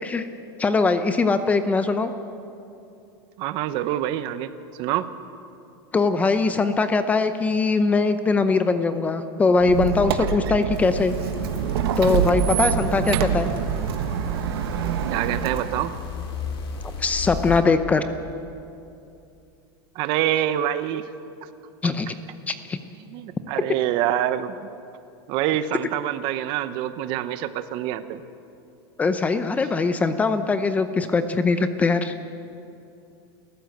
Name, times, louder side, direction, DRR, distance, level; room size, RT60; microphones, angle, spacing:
voice 1, 0.6-2.1 5.9-11.1 12.0-13.5 17.0-18.0 21.8-22.1 22.5-22.8 29.0-32.1, left 4 dB, 10° left, 10 dB, 0.7 m, -21 dB
voice 2, 3.4-5.1 15.1-16.0 19.9-21.1 23.1-24.7 25.3-28.2, right 12 dB, 35° right, 12 dB, 0.9 m, -26 dB
Squeak, 9.6-16.0, right 9 dB, 75° right, 1.6 m, -26 dB
sound 1, 10.7-17.6, left 5 dB, 85° left, 5.5 m, -35 dB
29.0 x 14.5 x 7.9 m, 2.7 s
supercardioid pair, 170°, 13 cm